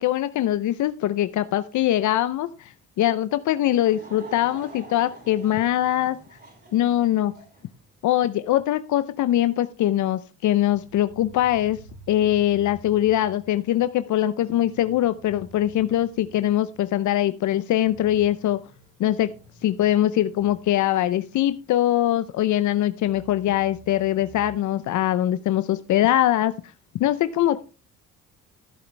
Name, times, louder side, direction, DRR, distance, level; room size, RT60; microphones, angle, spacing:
voice 1, 0.0-6.2 6.7-7.3 8.0-11.8 12.1-18.6 19.0-19.3 19.6-26.5 27.0-27.6, left 12 dB, 75° left, 13 dB, 0.7 m, -22 dB
Laughter / Crowd, 3.5-7.7, right 2 dB, 30° right, 6.1 m, -46 dB
sound 1, 10.7-17.1 17.4-17.5 17.8-22.4 22.9-24.6, right 1 dB, 65° right, 4.7 m, -50 dB
14.0 x 7.9 x 3.3 m, 0.34 s
cardioid pair, 90°, 30 cm